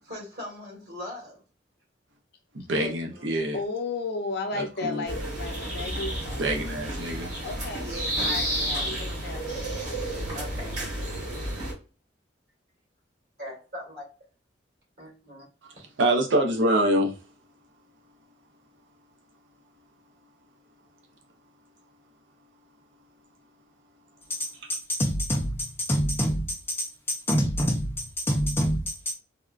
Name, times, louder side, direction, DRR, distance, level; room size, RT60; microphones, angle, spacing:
voice 1, 0.1-1.4 2.8-3.3 7.7-9.0 10.3-10.8 13.4-14.1 15.0-15.5, left 1 dB, 55° right, 1.7 m, -40 dB
voice 2, 2.5-3.6 4.5-5.0 6.3-7.3 15.8-17.1, right 1 dB, 75° right, 0.6 m, -25 dB
voice 3, 3.5-6.4 7.4-7.9 8.2-9.7, left 3 dB, 55° left, 0.6 m, -34 dB
sound 1, 5.0-11.7, right 1 dB, 40° right, 1.5 m, -31 dB
voice 4, 24.3-29.1, equal, 10° left, 0.5 m, -27 dB
3.5 x 2.2 x 2.4 m
head